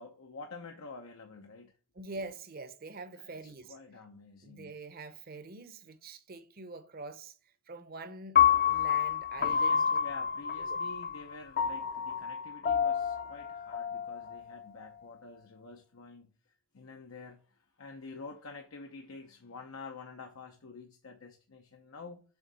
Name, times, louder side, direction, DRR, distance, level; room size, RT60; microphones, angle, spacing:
voice 1, 0.0-1.7 3.2-4.8 9.4-16.3 16.7-22.2, left 3 dB, 85° left, 0.8 m, -48 dB
voice 2, 1.9-3.8 4.4-7.3 7.7-9.8 10.6-10.8, right 3 dB, 45° right, 0.8 m, -45 dB
Piano, 8.4-14.5, left 8 dB, 45° left, 0.6 m, -29 dB
7.0 x 3.7 x 4.0 m
head